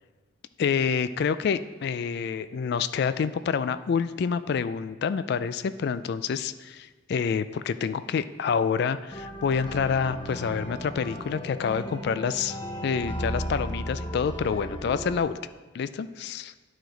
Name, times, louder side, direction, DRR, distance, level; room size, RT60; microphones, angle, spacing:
voice 1, 0.6-12.6 12.8-15.4 15.7-16.5, left 6 dB, 55° left, 13 dB, 0.3 m, -27 dB
sound 1, 9.1-15.2, equal, 25° left, 0.6 m, -35 dB
10.5 x 4.8 x 3.9 m, 1.4 s
head